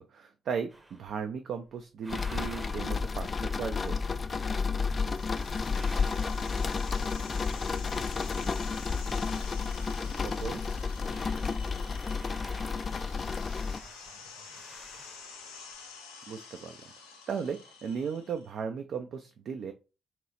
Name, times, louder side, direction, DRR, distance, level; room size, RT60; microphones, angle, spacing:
voice 1, 0.0-4.0 10.4-10.6 16.3-16.8 17.3-19.7, right 6 dB, 55° right, 6 dB, 0.4 m, -36 dB
sound 1, 0.7-1.3 1.7-9.5 9.7-9.8 10.1-15.8, right 1 dB, 20° right, 0.7 m, -53 dB
sound 2, 2.1-13.8, left 5 dB, 35° left, 0.3 m, -31 dB
sound 3, 4.8-18.5, left 5 dB, 80° left, 0.6 m, -49 dB
voice 2, 10.0-10.3 10.7-15.0, right 3 dB, 70° right, 0 dB, 1.6 m, -59 dB
3.0 x 2.9 x 4.1 m, 0.31 s
figure-of-eight pair, 40°, 0 cm